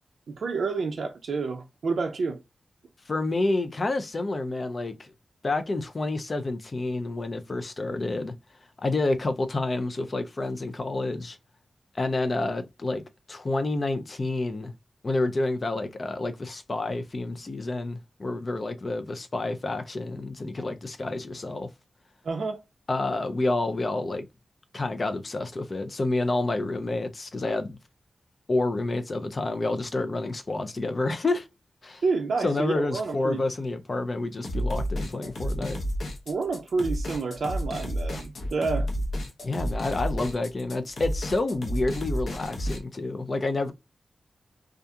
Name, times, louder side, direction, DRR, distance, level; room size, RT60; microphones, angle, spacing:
voice 1, 0.3-2.4 22.2-22.6 32.0-33.5 36.3-38.9, right 4 dB, 75° right, 0.4 m, -29 dB
voice 2, 3.1-5.1 5.4-8.3 8.8-11.4 11.9-13.0 13.3-14.7 15.0-21.7 22.9-24.3 24.7-27.8 28.5-31.5 31.8-32.0 32.4-35.8 39.4-43.7, left 2 dB, 35° left, 0.4 m, -29 dB
sound 1, 34.4-42.8, equal, 70° left, 0.8 m, -31 dB
2.7 x 2.4 x 2.2 m
wide cardioid pair, 170°, 0 cm